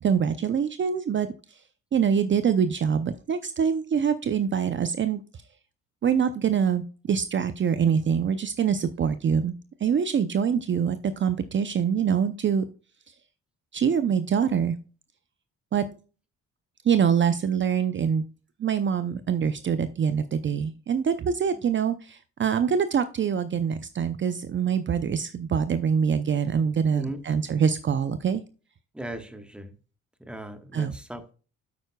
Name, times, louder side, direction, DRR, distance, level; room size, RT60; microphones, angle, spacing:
voice 1, 0.0-1.6 1.9-5.2 6.0-9.5 9.8-12.6 13.7-14.8 15.7-15.8 16.8-18.2 18.6-28.4 30.7-30.9, right 7 dB, 40° right, 0.6 m, -24 dB
voice 2, 26.9-27.2 28.9-29.7 30.2-31.3, right 1 dB, 5° right, 1.3 m, -38 dB
9.2 x 7.9 x 2.3 m
cardioid pair, 90°, 30 cm